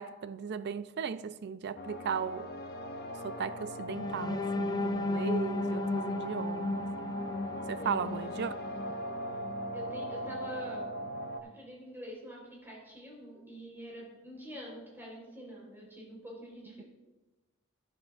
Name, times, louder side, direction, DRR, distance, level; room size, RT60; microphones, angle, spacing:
voice 1, 0.0-2.5 3.2-7.2 7.7-8.5, right 6 dB, 55° right, 0.4 m, -37 dB
sound 1, 1.7-11.4, equal, 50° left, 0.7 m, -40 dB
sound 2, 3.9-9.8 10.3-10.5 10.8-11.1, left 2 dB, 20° left, 0.4 m, -35 dB
voice 2, 7.8-8.5 9.7-10.8 11.5-16.8, equal, 10° right, 3.7 m, -46 dB
11.5 x 11.5 x 2.4 m
head